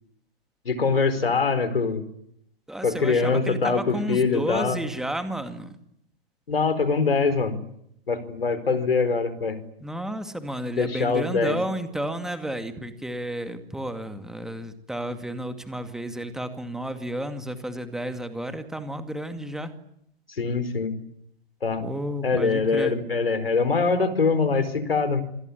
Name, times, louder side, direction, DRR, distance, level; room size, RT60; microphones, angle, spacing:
voice 1, 0.6-2.0 2.8-4.8 6.5-7.5 8.1-9.6 10.8-11.6 20.4-20.9 21.6-21.8 22.2-25.2, left 4 dB, 70° left, 12 dB, 4.7 m, -23 dB
voice 2, 2.7-5.7 9.8-19.7 21.8-22.9, right 1 dB, ahead, 8 dB, 2.2 m, -32 dB
27.0 x 21.5 x 9.8 m, 0.74 s
figure-of-eight pair, 115°, 31 cm